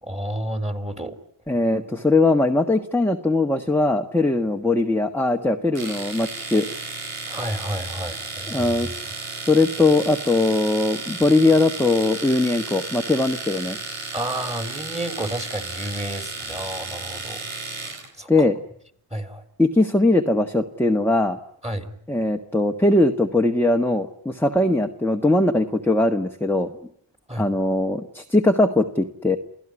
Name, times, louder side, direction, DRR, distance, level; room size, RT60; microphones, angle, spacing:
voice 1, 0.0-1.2 7.3-8.9 14.1-17.4 18.2-18.3 19.1-19.4 21.6-22.0 27.3-27.5, right 1 dB, 15° right, 8 dB, 3.4 m, -30 dB
voice 2, 1.5-6.7 8.5-9.1 9.5-13.8 18.3-18.6 19.6-21.4 22.1-26.7 27.4-29.4, left 2 dB, 5° left, 3 dB, 1.4 m, -20 dB
Domestic sounds home sounds, 5.7-18.1, right 3 dB, 90° right, 4.3 m, -33 dB
29.0 x 16.5 x 9.8 m, 0.68 s
cardioid pair, 60°, 49 cm